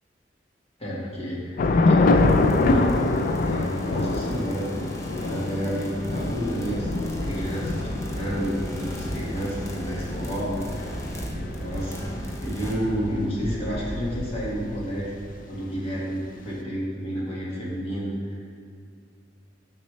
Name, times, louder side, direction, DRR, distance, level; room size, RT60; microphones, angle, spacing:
voice 1, 0.8-6.9 7.2-10.9 11.6-12.1 12.4-15.1 15.5-18.1, equal, 35° left, -6 dB, 1.6 m, -31 dB
Thunder / Rain, 1.6-14.1, left 2 dB, 50° left, 0.4 m, -26 dB
sound 1, 2.1-12.7, left 1 dB, 15° left, 0.7 m, -38 dB
sound 2, 5.9-15.6, right 1 dB, 20° right, 1.3 m, -36 dB
6.9 x 6.4 x 3.2 m, 2.3 s
head